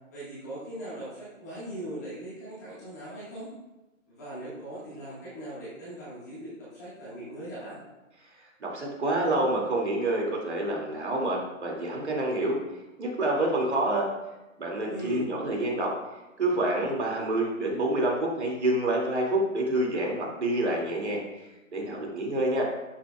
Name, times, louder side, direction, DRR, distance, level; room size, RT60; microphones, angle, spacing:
voice 1, 0.1-3.5 4.1-7.8 14.9-15.2, right 1 dB, 15° left, -10 dB, 1.5 m, -39 dB
voice 2, 8.6-12.6 13.0-14.1 14.6-15.9 16.4-21.2 21.7-22.6, right 1 dB, 55° right, -1 dB, 2.4 m, -27 dB
12.0 x 7.3 x 2.3 m, 1.0 s
hypercardioid pair, 180°, 41 cm